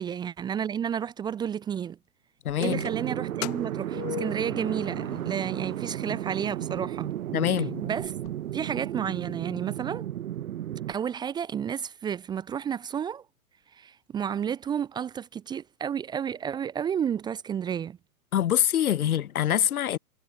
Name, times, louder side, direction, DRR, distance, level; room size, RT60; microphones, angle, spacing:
voice 1, 0.0-2.0 2.6-7.1 7.8-8.1 8.5-10.1 10.9-13.2 13.7-18.0, right 8 dB, 10° right, 1.0 m, -31 dB
voice 2, 2.4-2.8 7.3-7.8 18.3-20.0, left 11 dB, 70° left, 2.0 m, -25 dB
sound 1, 2.5-5.6 5.9-6.0 6.9-7.0 7.3-7.4 7.7-8.3, left 17 dB, 30° left, 0.7 m, -39 dB
sound 2, 2.6-10.9, right 12 dB, 60° right, 1.2 m, -34 dB
hypercardioid pair, 160°, 46 cm